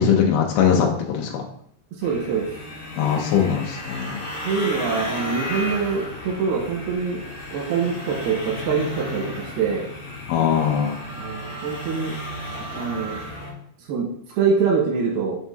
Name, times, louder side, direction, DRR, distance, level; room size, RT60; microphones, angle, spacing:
voice 1, 0.0-1.4 3.0-4.2 10.3-11.0, left 7 dB, 80° left, 0 dB, 2.6 m, -21 dB
sound 1, 2.0-13.5, left 1 dB, 35° left, 1.5 m, -34 dB
voice 2, 2.0-2.5 4.4-7.2 7.5-9.9 11.1-12.1 12.7-13.2 13.9-14.1 14.4-15.4, right 5 dB, 90° right, -3 dB, 3.3 m, -24 dB
7.1 x 5.8 x 2.8 m, 0.66 s
omnidirectional pair, 4.3 m